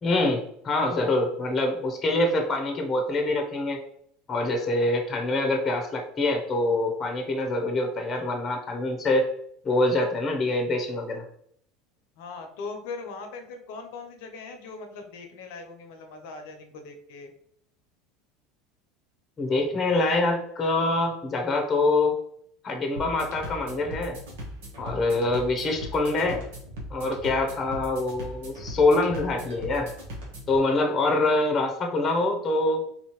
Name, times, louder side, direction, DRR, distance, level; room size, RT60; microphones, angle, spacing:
voice 1, 0.0-3.8 4.3-9.3 9.6-11.2 19.4-22.2 22.6-24.2 24.8-26.4 26.9-29.9 30.5-32.8, left 2 dB, 30° left, 3 dB, 0.8 m, -25 dB
voice 2, 12.2-17.3, left 4 dB, 70° left, 5 dB, 0.7 m, -40 dB
sound 1, 23.0-30.6, equal, 75° right, 1.2 m, -39 dB
4.1 x 2.7 x 3.0 m, 0.68 s
hypercardioid pair, 90°, 0 cm